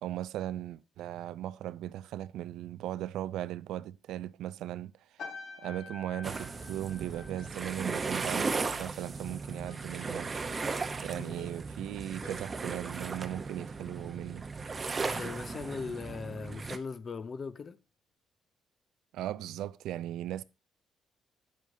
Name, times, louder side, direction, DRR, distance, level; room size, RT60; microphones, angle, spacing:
voice 1, 0.0-4.9 5.6-10.3 11.0-14.5 19.1-20.4, right 12 dB, 85° right, 0.4 m, -38 dB
sound 1, 5.2-9.8 10.1-10.5, left 4 dB, 60° left, 1.5 m, -49 dB
sound 2, 6.2-16.8, right 4 dB, 30° right, 0.7 m, -36 dB
Ringtone, 7.1-7.3 7.9-8.2 8.8-9.1 9.7-9.9 10.5-10.9 11.4-11.8 12.2-12.7 13.0-13.1, left 1 dB, 85° left, 5.4 m, -55 dB
voice 2, 11.1-11.4 15.0-17.8, left 5 dB, 35° left, 0.5 m, -39 dB
9.1 x 7.5 x 2.7 m
cardioid pair, 120°, 0 cm